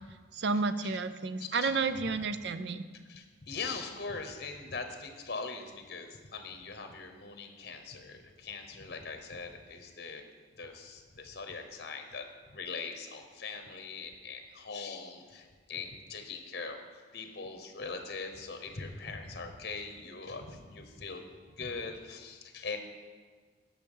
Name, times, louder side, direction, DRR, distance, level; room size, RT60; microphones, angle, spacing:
voice 1, 0.3-2.8, right 4 dB, 70° right, 12 dB, 0.5 m, -31 dB
voice 2, 1.4-1.7 3.0-10.2 10.6-16.8 17.1-21.3 21.6-22.8, left 4 dB, 55° left, 6 dB, 1.0 m, -41 dB
12.0 x 5.7 x 5.5 m, 1.5 s
head